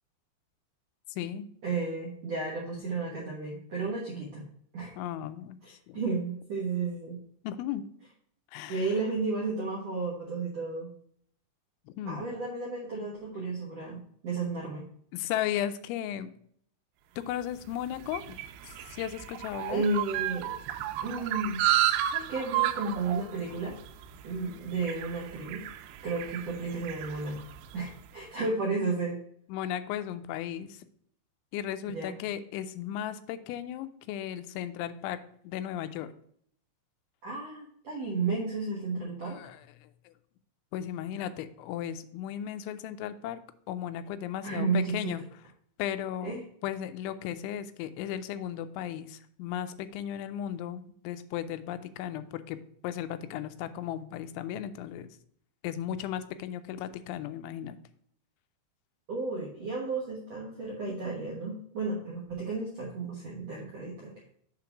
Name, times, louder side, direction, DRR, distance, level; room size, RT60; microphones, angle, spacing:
voice 1, 1.1-1.5 5.0-6.0 7.4-7.8 8.5-8.9 11.9-12.2 15.1-16.3 17.2-18.4 18.6-19.8 29.5-30.8 31.5-35.2 35.4-36.1 39.2-40.1 40.7-43.4 43.7-45.2 45.8-46.4 46.6-52.6 52.8-55.1 55.6-57.8, left 11 dB, 90° left, 11 dB, 3.0 m, -35 dB
voice 2, 1.6-4.4 4.7-4.9 5.6-7.2 8.7-10.9 12.0-14.8 19.7-20.5 21.0-21.6 22.1-23.8 24.2-25.7 26.0-27.4 27.7-29.2 31.9-32.1 37.2-39.4 44.4-45.1 46.2-46.4 59.1-64.2, right 3 dB, 75° right, -3 dB, 1.5 m, -33 dB
sound 1, 17.4-28.0, right 14 dB, 90° right, 3.0 m, -33 dB
7.7 x 3.8 x 5.8 m, 0.64 s
omnidirectional pair, 5.3 m